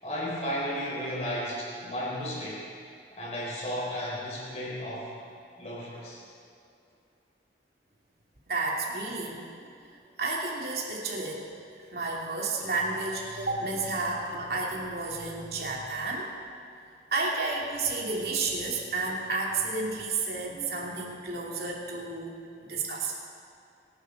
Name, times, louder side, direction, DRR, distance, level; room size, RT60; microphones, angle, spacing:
voice 1, 0.0-2.7 3.1-5.1 5.6-6.2, equal, 40° left, -5 dB, 4.3 m, -34 dB
voice 2, 8.5-9.5 9.9-11.4 11.9-16.3 17.1-22.4 22.7-23.1, right 3 dB, 60° right, -2 dB, 2.7 m, -31 dB
25.5 x 11.0 x 3.9 m, 2.4 s
head